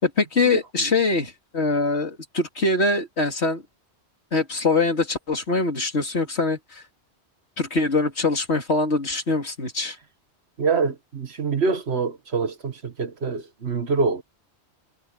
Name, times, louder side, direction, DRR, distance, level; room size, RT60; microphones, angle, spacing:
voice 1, 0.0-3.6 4.3-6.8 7.6-10.0, left 3 dB, 75° left, 3.1 m, -23 dB
voice 2, 10.6-14.2, right 4 dB, 70° right, 1.8 m, -25 dB
omnidirectional pair, 1.1 m